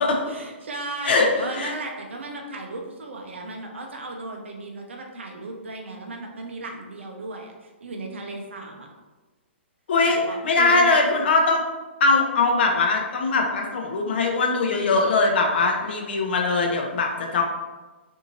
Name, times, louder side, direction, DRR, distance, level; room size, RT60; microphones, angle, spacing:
voice 1, 0.2-8.9 10.1-11.0, right 2 dB, 75° right, 1 dB, 0.6 m, -35 dB
voice 2, 1.0-1.7 9.9-11.6 12.0-17.4, left 3 dB, 60° left, 2 dB, 0.6 m, -21 dB
2.7 x 2.6 x 2.8 m, 1.2 s
hypercardioid pair, 130°, 7 cm